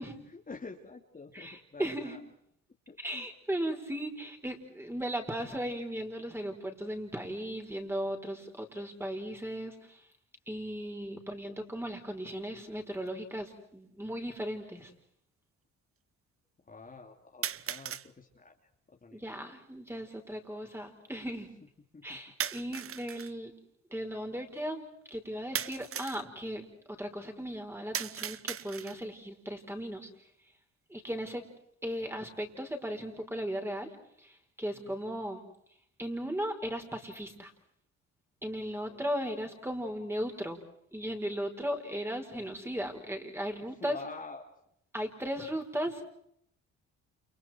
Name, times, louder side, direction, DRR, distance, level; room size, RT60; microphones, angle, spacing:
voice 1, 0.3-2.2 2.9-3.3 16.7-19.2 21.9-22.2 34.7-35.0 38.9-39.1 43.7-44.5, left 4 dB, 25° left, 2 dB, 3.1 m, -47 dB
voice 2, 1.3-2.2 3.0-10.0 10.5-14.9 19.1-21.5 22.0-23.5 23.9-30.1 30.9-31.4 31.8-33.9 34.2-35.4 36.0-37.5 38.4-40.6 40.9-44.0 44.9-46.1, equal, 10° right, 5 dB, 5.4 m, -37 dB
sound 1, 13.1-13.2 14.1-14.2 17.4-18.1 22.4-23.3 25.5-26.2 27.9-29.1, right 9 dB, 45° right, 0.9 m, -37 dB
30.0 x 28.5 x 4.6 m, 0.71 s
cardioid pair, 90°, 30 cm